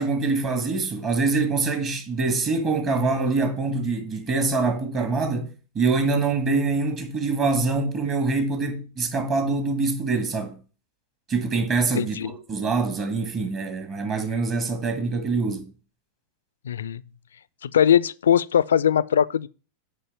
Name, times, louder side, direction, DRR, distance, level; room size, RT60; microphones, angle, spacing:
voice 1, 0.0-10.6 11.3-15.7, right 3 dB, 30° right, 1.6 m, -25 dB
voice 2, 12.0-12.3 16.6-17.0 17.6-19.5, left 9 dB, 65° left, 0.3 m, -20 dB
6.9 x 5.0 x 7.0 m
figure-of-eight pair, 90°, 0 cm